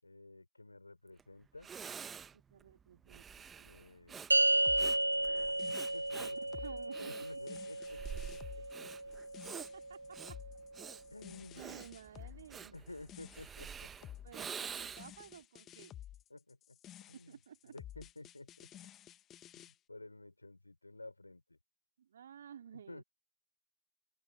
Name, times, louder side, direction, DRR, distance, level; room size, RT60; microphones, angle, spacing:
voice 1, 0.0-1.7 3.5-4.9 5.3-6.6 7.0-8.9 11.1-11.6 12.7-14.1 16.3-16.8 17.1-17.4 17.6-18.7 19.6-21.6 22.7-23.0, left 2 dB, 85° left, 5.3 m, -53 dB
Breathing, 1.2-1.3 1.6-15.2, right 7 dB, 20° right, 1.4 m, -48 dB
voice 2, 2.3-3.7 6.1-7.1 9.7-10.0 11.6-12.8 14.2-16.0 17.3-17.7 22.0-23.0, right 8 dB, 65° right, 3.4 m, -53 dB
sound 1, 4.3-10.8, right 1 dB, 85° right, 0.8 m, -34 dB
sound 2, 4.6-19.7, left 12 dB, 30° left, 1.8 m, -53 dB
open air
figure-of-eight pair, 90°, 0 cm